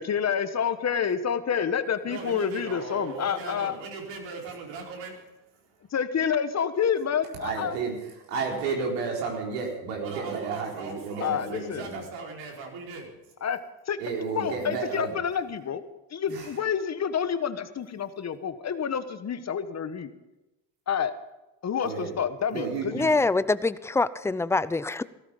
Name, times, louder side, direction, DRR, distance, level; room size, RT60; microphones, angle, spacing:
voice 1, 0.0-3.7 5.9-7.8 11.2-11.9 13.4-13.6 13.9-14.0 14.3-15.8 16.1-20.1 20.9-21.1 21.6-23.1, left 7 dB, 35° left, 11 dB, 1.3 m, -28 dB
voice 2, 2.0-5.2 10.0-13.3, right 4 dB, 70° right, 0 dB, 4.9 m, -39 dB
voice 3, 7.4-12.0 14.0-15.1 16.3-16.6 21.8-22.1 22.5-23.1, right 5 dB, 90° right, -1 dB, 4.4 m, -32 dB
voice 4, 22.9-25.0, left 3 dB, 5° left, 16 dB, 0.5 m, -25 dB
17.0 x 13.5 x 5.3 m, 0.99 s
supercardioid pair, 80°, 46 cm